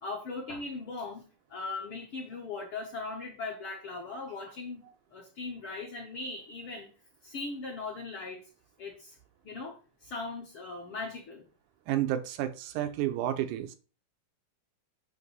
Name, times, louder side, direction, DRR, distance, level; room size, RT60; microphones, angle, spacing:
voice 1, 0.0-1.2 1.5-4.8 5.1-6.9 7.2-8.4 8.8-9.2 9.4-11.4, left 3 dB, 60° left, -1 dB, 1.5 m, -39 dB
voice 2, 11.9-13.8, right 12 dB, 85° right, 9 dB, 2.2 m, -31 dB
8.0 x 3.0 x 5.4 m, 0.36 s
omnidirectional pair, 3.6 m